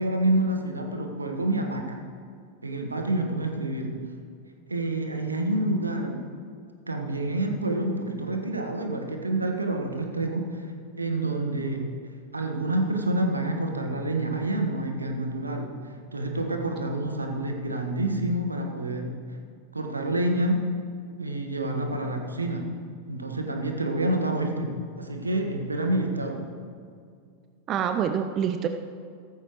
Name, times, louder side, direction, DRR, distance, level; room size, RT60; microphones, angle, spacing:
voice 1, 0.0-2.0 2.6-4.0 4.7-6.2 6.9-10.7 11.0-11.9 12.3-19.2 19.7-20.6 21.2-22.7 23.1-26.5, right 1 dB, 80° right, 3 dB, 1.4 m, -28 dB
voice 2, 27.7-28.7, right 8 dB, 30° right, 7 dB, 0.5 m, -27 dB
16.0 x 14.0 x 3.1 m, 2.2 s
figure-of-eight pair, 90°, 0 cm